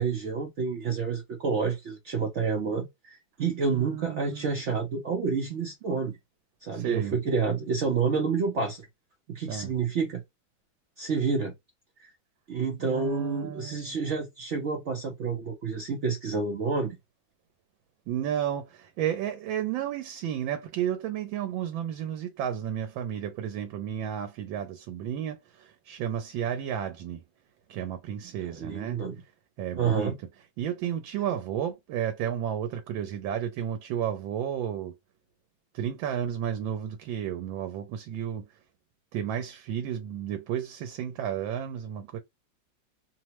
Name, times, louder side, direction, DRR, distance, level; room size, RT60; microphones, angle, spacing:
voice 1, 0.0-6.2 6.6-8.9 9.3-10.2 11.0-11.5 12.0-12.1 12.5-17.0 28.6-29.2 29.8-30.2, right 5 dB, 70° right, 0.6 m, -29 dB
voice 2, 3.7-4.6 6.7-7.2 9.5-9.7 12.8-14.0 18.1-27.2 27.7-29.0 29.6-30.1 30.6-34.9 35.7-38.6 39.1-42.2, right 9 dB, 90° right, 1.3 m, -32 dB
3.2 x 2.0 x 2.8 m
omnidirectional pair, 2.1 m